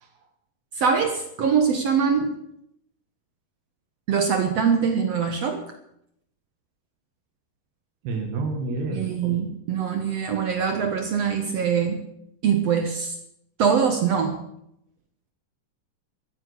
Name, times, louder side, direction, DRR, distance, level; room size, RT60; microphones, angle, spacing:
voice 1, 0.8-2.3 4.1-5.6 8.9-12.0 12.4-13.1 13.6-14.4, right 6 dB, 65° right, 6 dB, 1.6 m, -23 dB
voice 2, 8.1-9.4, right 3 dB, 80° right, 2 dB, 3.8 m, -29 dB
14.5 x 9.7 x 8.1 m, 0.76 s
omnidirectional pair, 4.6 m